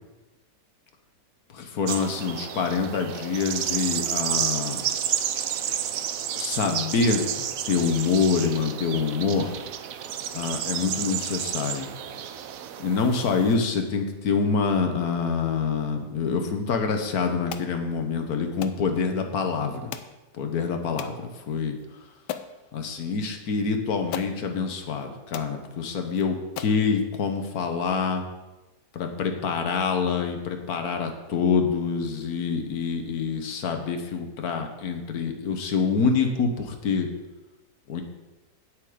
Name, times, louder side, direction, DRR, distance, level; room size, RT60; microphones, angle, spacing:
voice 1, 1.5-4.8 6.4-7.2 7.7-9.6 10.3-11.9 12.8-19.9 20.4-21.8 22.7-28.2 28.9-37.1 37.9-38.0, left 5 dB, 60° left, 5 dB, 1.5 m, -26 dB
sound 1, 1.9-13.6, right 9 dB, 65° right, 0.9 m, -31 dB
sound 2, 17.5-17.7 18.6-18.8 19.9-20.2 21.0-21.2 21.8-21.9 22.3-22.5 23.6-23.7 24.1-24.4 25.0-25.1 25.3-25.5 26.1-26.2 26.6-26.8, left 10 dB, 80° left, 1.2 m, -36 dB
8.9 x 8.1 x 5.0 m, 1.1 s
omnidirectional pair, 1.8 m